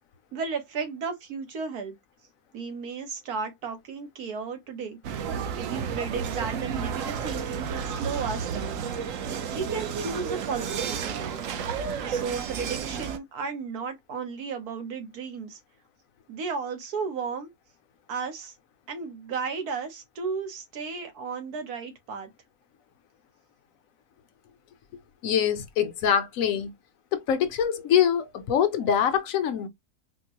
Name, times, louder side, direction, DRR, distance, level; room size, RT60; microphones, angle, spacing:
voice 1, 0.3-2.0 2.5-5.0 5.5-9.1 9.5-11.5 12.1-15.6 16.3-17.5 18.1-18.5 18.9-22.3, right 5 dB, 90° right, 1.5 m, -34 dB
sound 1, 5.0-13.2, right 6 dB, 65° right, 1.0 m, -32 dB
voice 2, 25.2-26.7 27.1-29.7, left 8 dB, 70° left, 1.0 m, -24 dB
4.3 x 2.1 x 2.8 m
omnidirectional pair, 1.6 m